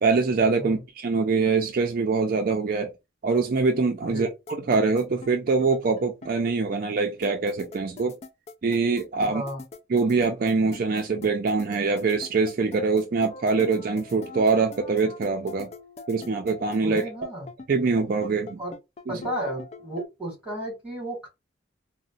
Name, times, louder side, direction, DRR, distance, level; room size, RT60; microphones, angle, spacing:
voice 1, 0.0-2.9 3.2-8.2 8.6-9.4 9.9-15.7 16.1-17.0 17.7-18.6 19.1-19.2, right 4 dB, 50° right, 0.4 m, -24 dB
sound 1, 4.5-20.1, left 3 dB, 35° left, 0.4 m, -42 dB
voice 2, 9.2-9.6 16.8-17.5 18.6-18.7 19.1-21.3, right 1 dB, 5° right, 1.9 m, -33 dB
3.8 x 2.1 x 2.5 m
head